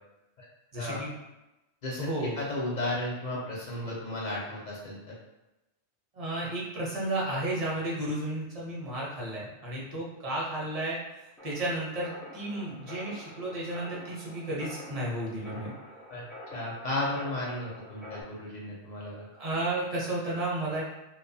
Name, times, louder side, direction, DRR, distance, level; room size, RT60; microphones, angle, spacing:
voice 1, 0.7-1.2 2.0-2.4 6.1-15.7 19.1-20.8, right 1 dB, 40° right, -5 dB, 0.7 m, -33 dB
voice 2, 1.8-5.0 16.1-16.3 16.5-19.2, left 1 dB, 50° left, -5 dB, 0.6 m, -34 dB
sound 1, 11.4-18.2, left 1 dB, ahead, 0.4 m, -47 dB
2.5 x 2.2 x 2.6 m, 0.99 s
omnidirectional pair, 1.2 m